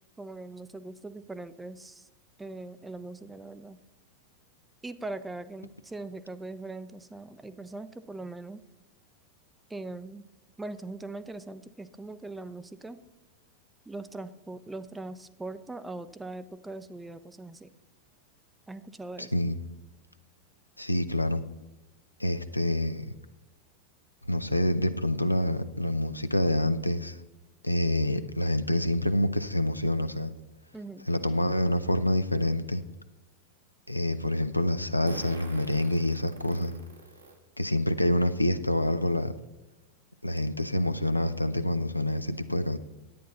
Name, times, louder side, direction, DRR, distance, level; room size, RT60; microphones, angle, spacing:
voice 1, 0.2-2.1 2.4-3.8 4.8-8.6 9.7-10.2 10.6-13.0 13.9-17.7 18.7-19.3 30.7-31.1, right 2 dB, 10° right, 13 dB, 0.5 m, -41 dB
voice 2, 20.8-21.4 22.2-23.1 24.3-27.2 27.6-30.3 31.1-32.8 33.9-36.8 37.6-39.3 40.2-42.8, left 1 dB, 85° left, 11 dB, 0.5 m, -27 dB
Fart, 32.3-32.4 35.1-37.4 38.0-38.1 39.4-39.5 39.8-39.9 40.4-40.6, right 3 dB, 75° right, 1.6 m, -45 dB
10.0 x 9.3 x 4.1 m, 1.0 s
figure-of-eight pair, 90°, 0 cm